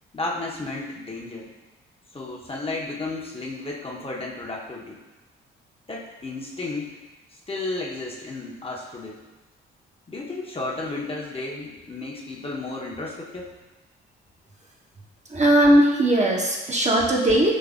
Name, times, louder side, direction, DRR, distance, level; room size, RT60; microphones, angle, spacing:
voice 1, 0.1-1.5 2.1-5.0 5.9-7.0 7.5-9.2 10.1-13.5, left 2 dB, 20° left, -3 dB, 0.8 m, -33 dB
voice 2, 15.3-17.5, right 1 dB, 25° right, -2 dB, 0.7 m, -18 dB
5.1 x 3.2 x 2.4 m, 1.1 s
figure-of-eight pair, 40°, 29 cm